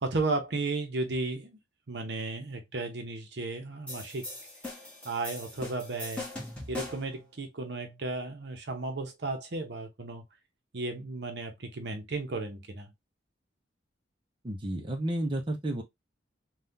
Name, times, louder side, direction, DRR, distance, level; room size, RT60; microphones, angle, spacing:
voice 1, 0.0-1.6 1.9-4.3 5.0-6.3 6.7-10.2 10.7-12.9, right 3 dB, 60° right, 0.8 m, -34 dB
sound 1, 3.9-7.2, left 2 dB, 5° left, 1.2 m, -40 dB
voice 2, 14.4-15.8, right 1 dB, 25° right, 0.6 m, -31 dB
3.6 x 2.4 x 2.6 m
head